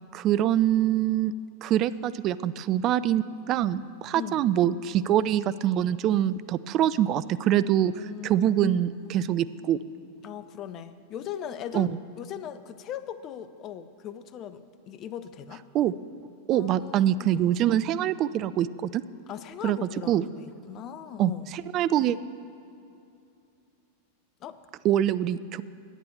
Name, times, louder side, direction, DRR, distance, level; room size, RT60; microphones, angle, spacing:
voice 1, 0.1-1.3 1.6-8.0 8.2-9.8 11.7-11.9 15.7-15.9 16.5-19.0 19.6-20.2 21.2-22.2 24.8-25.6, right 11 dB, 35° right, 16 dB, 0.3 m, -24 dB
voice 2, 4.1-4.4 7.9-8.8 9.0-9.2 10.2-11.9 12.2-15.6 16.5-17.3 19.3-21.5 24.4-24.6, left 9 dB, 35° left, 12 dB, 0.6 m, -39 dB
11.5 x 8.7 x 7.2 m, 2.6 s
figure-of-eight pair, 90°, 0 cm